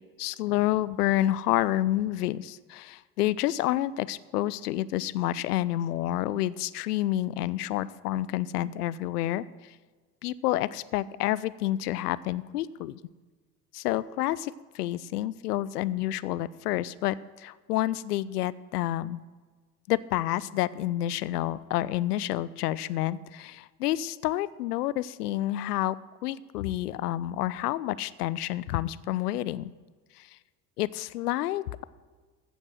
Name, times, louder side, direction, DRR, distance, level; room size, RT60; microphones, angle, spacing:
voice 1, 0.2-9.8 10.2-13.0 13.7-19.2 19.9-26.0 26.2-29.7 30.2-30.3 30.8-31.8, left 14 dB, 70° left, 19 dB, 0.6 m, -29 dB
15.5 x 5.3 x 6.2 m, 1.4 s
figure-of-eight pair, 65°, 48 cm